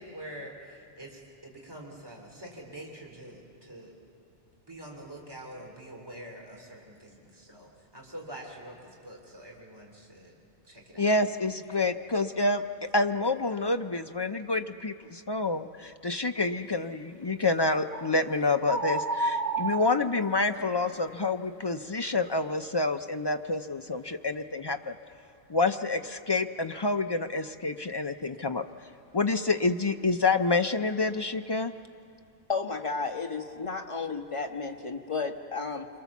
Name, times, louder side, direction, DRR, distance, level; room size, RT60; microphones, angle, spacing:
voice 1, 0.0-4.0 4.7-6.8 7.8-10.3 10.6-11.0, right 1 dB, 20° right, -1 dB, 3.1 m, -45 dB
voice 2, 11.0-12.6 12.9-25.0 25.5-28.6 29.1-31.7, left 3 dB, 45° left, 7 dB, 0.3 m, -28 dB
sound 1, 17.9-18.2 18.7-20.7, right 2 dB, 40° right, 0.8 m, -31 dB
voice 3, 32.5-35.9, left 4 dB, 25° left, 3 dB, 1.3 m, -33 dB
27.5 x 22.5 x 7.2 m, 2.4 s
omnidirectional pair, 1.3 m